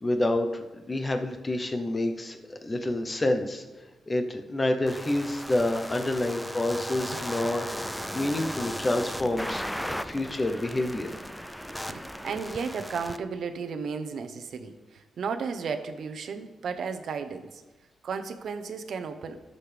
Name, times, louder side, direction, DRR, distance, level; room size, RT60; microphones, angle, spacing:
voice 1, 0.0-3.6 4.1-11.1, left 1 dB, 20° left, 6 dB, 0.8 m, -28 dB
sound 1, 4.9-13.2, equal, ahead, 0.3 m, -36 dB
voice 2, 11.9-17.6 18.0-19.4, right 5 dB, 60° right, 8 dB, 0.8 m, -34 dB
18.0 x 6.6 x 3.4 m, 1.2 s
wide cardioid pair, 165°, 0 cm